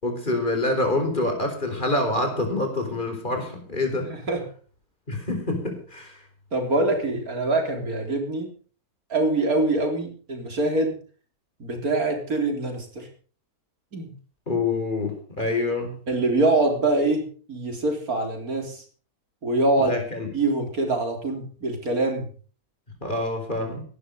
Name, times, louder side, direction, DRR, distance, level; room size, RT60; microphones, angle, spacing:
voice 1, 0.0-4.1 5.1-6.2 14.5-16.0 19.8-20.3 23.0-23.8, left 2 dB, 30° left, 4 dB, 4.6 m, -26 dB
voice 2, 4.1-4.4 6.5-8.5 9.1-11.0 11.6-13.1 13.9-14.1 16.1-18.8 19.4-20.0 20.3-22.3, right 2 dB, 75° right, 4 dB, 4.0 m, -24 dB
17.5 x 12.0 x 5.3 m, 0.41 s
omnidirectional pair, 1.6 m